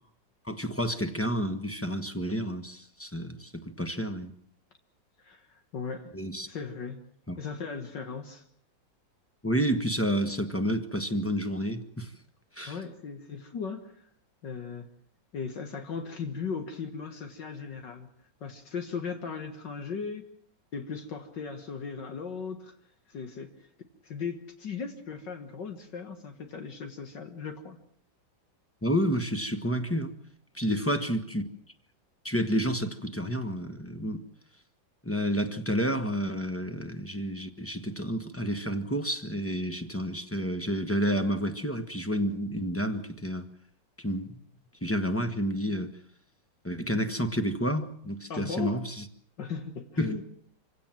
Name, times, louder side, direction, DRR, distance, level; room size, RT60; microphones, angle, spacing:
voice 1, 0.4-4.3 6.1-6.5 7.3-7.4 9.4-12.1 12.6-12.8 28.8-30.1 30.5-31.5 32.2-34.2 35.0-43.4 44.0-44.4 44.8-45.9 46.6-49.0 50.0-50.2, equal, 10° left, 1.1 m, -30 dB
voice 2, 5.2-6.2 6.5-7.1 7.4-8.4 12.6-14.0 14.4-14.9 15.3-18.1 18.4-20.2 20.7-22.7 23.1-23.7 24.0-27.8 48.3-48.8 49.4-50.2, left 5 dB, 70° left, 2.2 m, -37 dB
26.0 x 17.0 x 7.6 m
omnidirectional pair, 2.1 m